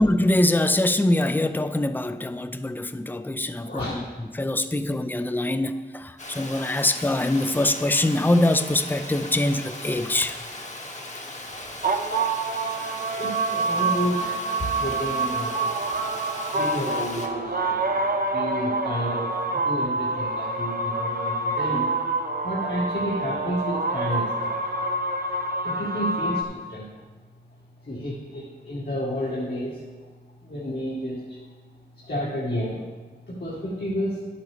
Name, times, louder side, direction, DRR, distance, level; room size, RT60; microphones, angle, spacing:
voice 1, 0.0-10.4, left 1 dB, 10° left, 10 dB, 0.5 m, -23 dB
Water, 6.2-17.3, left 1 dB, 40° left, 1.2 m, -38 dB
sound 1, 11.5-26.4, right 3 dB, 55° right, 0.8 m, -27 dB
voice 2, 13.2-15.7 16.5-17.8 18.3-21.9 22.4-24.6 25.6-26.9 27.8-29.8 30.4-31.4 32.0-32.8 33.3-34.2, equal, 70° left, -8 dB, 2.0 m, -30 dB
11.5 x 8.1 x 3.4 m, 1.4 s
wide cardioid pair, 50°, 18 cm